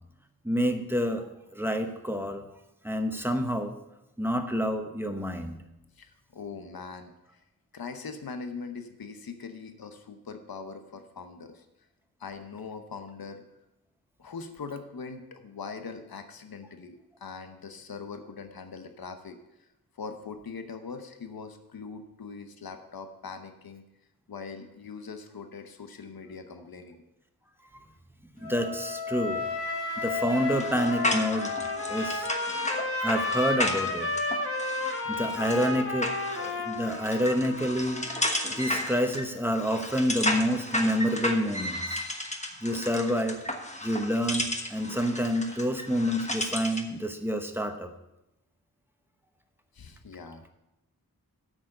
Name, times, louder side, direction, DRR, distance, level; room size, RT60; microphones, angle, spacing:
voice 1, 0.4-1.3 1.5-2.5 2.8-3.7 4.2-5.6 28.4-29.4 30.0-31.5 31.9-32.3 33.0-34.1 35.1-36.1 36.4-38.1 38.6-42.0 42.6-43.4 43.8-47.9, equal, 5° right, 6 dB, 1.0 m, -28 dB
voice 2, 6.0-7.1 7.7-11.6 12.2-13.4 14.2-19.4 19.9-23.8 24.3-27.0 49.7-50.5, left 5 dB, 70° left, 7 dB, 0.9 m, -41 dB
Wind instrument woodwind instrument, 28.4-32.5, left 4 dB, 90° left, 2.9 m, -33 dB
Trumpet, 30.2-38.6, left 2 dB, 35° left, 1.3 m, -33 dB
sound 1, 30.5-46.9, left 1 dB, 20° left, 1.2 m, -33 dB
8.5 x 6.3 x 6.5 m, 0.90 s
wide cardioid pair, 75°, 37 cm